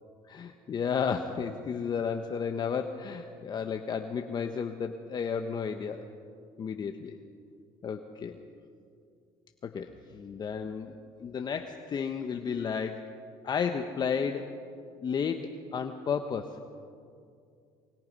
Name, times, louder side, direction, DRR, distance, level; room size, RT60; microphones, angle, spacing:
voice 1, 0.2-6.0 6.6-7.2 7.8-8.4 9.6-13.1 13.4-14.5 15.0-16.6, left 6 dB, 40° left, 6 dB, 1.2 m, -33 dB
24.0 x 23.5 x 5.4 m, 2.4 s
supercardioid pair, 90°, 11 cm